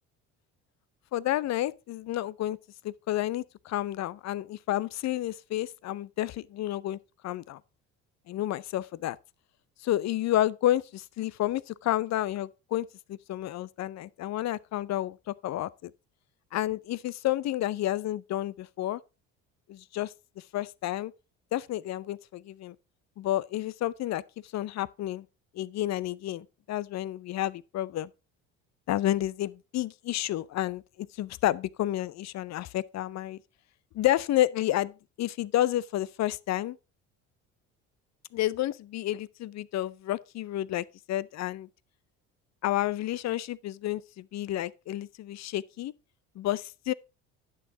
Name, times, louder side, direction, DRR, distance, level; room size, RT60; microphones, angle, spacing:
voice 1, 1.1-2.6 2.8-7.6 8.3-9.2 9.8-15.9 16.5-19.0 19.7-20.1 20.5-21.1 21.5-22.8 23.2-25.3 25.5-28.1 28.9-33.4 33.9-36.8 38.3-41.7 42.6-45.9 46.4-46.9, left 14 dB, 50° left, 0.5 m, -30 dB
10.0 x 6.3 x 3.8 m
hypercardioid pair, 70°, 36 cm